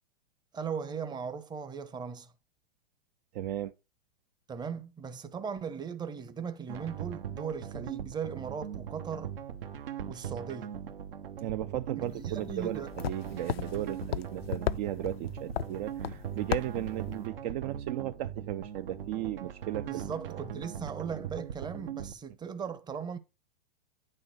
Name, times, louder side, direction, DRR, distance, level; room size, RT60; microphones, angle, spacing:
voice 1, 0.5-2.3 4.5-9.3 10.1-10.7 12.0-12.9 19.8-23.2, right 6 dB, 15° right, 0.8 m, -38 dB
voice 2, 3.3-3.7 11.4-20.4, right 13 dB, 45° right, 0.6 m, -36 dB
sound 1, 6.7-22.1, right 9 dB, 70° right, 1.2 m, -40 dB
sound 2, 12.1-17.3, left 10 dB, 75° left, 0.6 m, -37 dB
9.5 x 4.3 x 6.3 m
hypercardioid pair, 110°, 30 cm